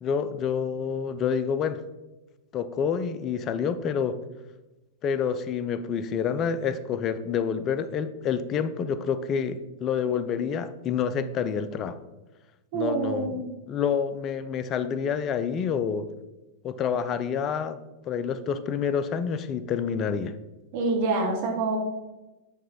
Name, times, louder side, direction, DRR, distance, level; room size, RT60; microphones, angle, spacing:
voice 1, 0.0-1.8 2.5-4.2 5.0-12.0 12.7-13.4 13.7-16.1 16.6-17.8 18.0-20.3, left 7 dB, 30° left, 12 dB, 0.4 m, -28 dB
voice 2, 12.7-13.5 20.7-21.8, right 3 dB, 45° right, 0 dB, 1.6 m, -26 dB
8.8 x 3.1 x 4.3 m, 1.1 s
figure-of-eight pair, 90°, 0 cm